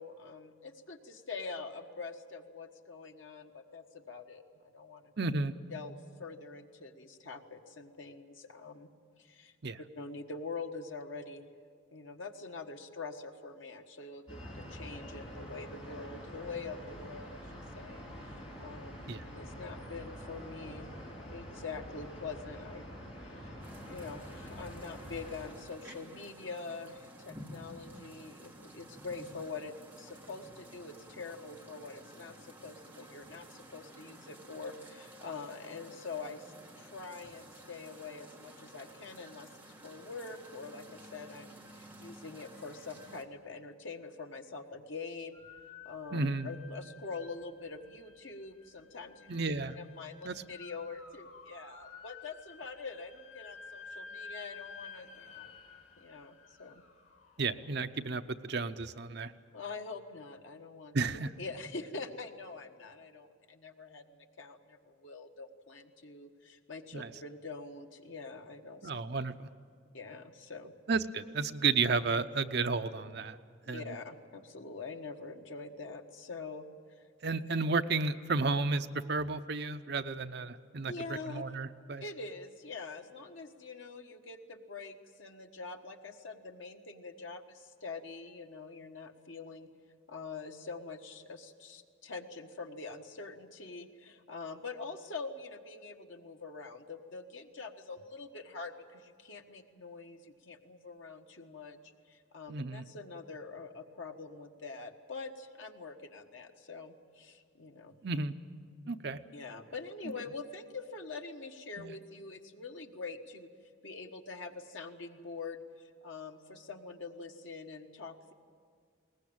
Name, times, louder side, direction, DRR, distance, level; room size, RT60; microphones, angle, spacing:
voice 1, 0.0-5.1 5.7-8.9 9.2-9.5 10.0-11.5 11.9-17.4 17.8-20.9 21.3-22.9 23.2-23.5 23.9-45.4 45.8-49.3 49.8-55.5 56.0-56.8 59.5-68.9 69.9-70.7 73.7-76.7 76.9-77.0 80.9-81.5 82.0-89.7 90.1-101.8 102.1-108.0 109.3-113.5 113.8-118.3, left 4 dB, 70° left, 4 dB, 1.4 m, -45 dB
voice 2, 5.2-5.5 9.6-9.8 19.1-19.2 46.1-46.5 49.3-49.8 50.2-50.4 57.4-59.3 60.9-61.3 66.9-67.1 68.8-69.5 70.9-73.4 73.7-73.8 77.2-82.0 102.5-102.8 108.0-108.3 108.9-109.2 111.8-111.9, right 4 dB, 55° right, 9 dB, 0.7 m, -32 dB
sound 1, 14.3-25.5, equal, 25° left, 7.5 m, -46 dB
sound 2, 23.6-43.2, right 1 dB, 10° right, 1.6 m, -53 dB
sound 3, 45.3-58.4, left 4 dB, 85° left, 3.2 m, -52 dB
21.0 x 19.0 x 8.8 m, 2.1 s
head